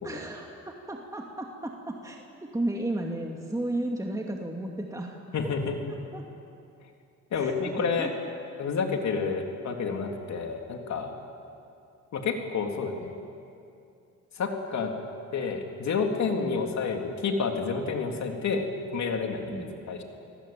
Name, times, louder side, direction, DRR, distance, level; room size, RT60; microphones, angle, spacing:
voice 1, 0.0-2.2 2.5-5.2 6.1-6.3 7.3-7.7 8.0-8.1 16.4-16.7 19.5-19.8, right 1 dB, 10° right, 0 dB, 2.4 m, -33 dB
voice 2, 5.3-6.0 7.3-8.1 8.6-11.1 12.1-13.1 14.3-14.9 15.3-18.7 18.9-20.0, left 5 dB, 65° left, 3 dB, 3.6 m, -29 dB
29.5 x 19.0 x 9.1 m, 2.6 s
cardioid pair, 90°, 30 cm